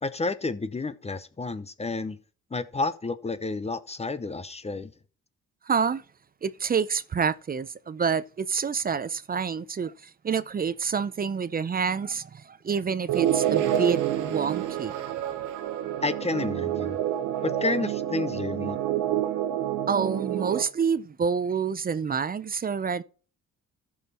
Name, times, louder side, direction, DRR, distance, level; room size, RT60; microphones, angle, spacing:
voice 1, 0.0-2.2 2.5-4.9 16.0-17.0 17.4-18.8, left 3 dB, 20° left, 0.8 m, -30 dB
voice 2, 5.7-6.0 6.4-14.9 19.9-23.0, right 6 dB, 30° right, 0.5 m, -28 dB
sound 1, 13.1-20.6, right 11 dB, 85° right, 1.1 m, -28 dB
13.5 x 5.6 x 4.3 m
cardioid pair, 90°, 30 cm